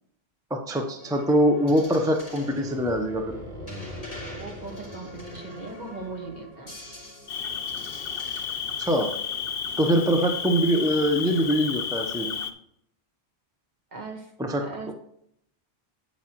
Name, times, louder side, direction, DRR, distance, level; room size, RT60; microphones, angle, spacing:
voice 1, 0.5-3.4 8.8-9.1 9.8-12.3 14.4-14.6, equal, 5° right, 3 dB, 0.8 m, -23 dB
sound 1, 1.0-8.9 9.7-11.5, left 1 dB, 35° left, 3.2 m, -46 dB
sound 2, 2.2-7.3 8.0-8.1 8.5-8.8, equal, 75° right, 2.4 m, -42 dB
voice 2, 4.4-6.7 10.1-10.4 13.9-14.3 14.6-14.9, right 3 dB, 45° right, 1 dB, 1.7 m, -39 dB
Cricket, 7.3-12.5, left 7 dB, 65° left, 1.0 m, -32 dB
8.7 x 8.6 x 3.0 m, 0.73 s
omnidirectional pair, 1.1 m